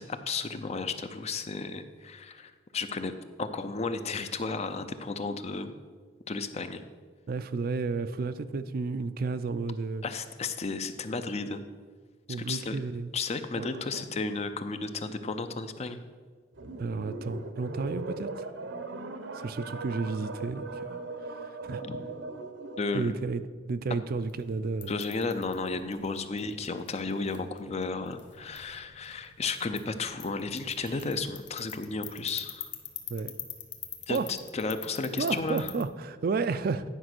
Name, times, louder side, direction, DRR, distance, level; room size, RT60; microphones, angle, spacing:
voice 1, 0.0-3.1 3.4-5.7 6.3-6.8 10.0-11.6 12.4-12.8 13.1-16.0 21.8-22.0 22.8-23.1 24.9-32.7 34.1-35.7, left 4 dB, 35° left, 10 dB, 0.5 m, -33 dB
voice 2, 7.3-10.0 12.3-13.1 13.6-14.0 16.8-18.5 19.3-21.0 21.3-21.8 22.9-23.4 23.7-24.9 30.8-31.0 33.1-33.3 34.1-34.3 35.2-36.8, right 4 dB, 50° right, 12 dB, 0.4 m, -32 dB
sound 1, 16.6-23.0, right 3 dB, 75° right, 0.8 m, -39 dB
sound 2, 24.1-35.8, left 8 dB, 65° left, 0.9 m, -46 dB
10.0 x 5.2 x 6.1 m, 1.5 s
head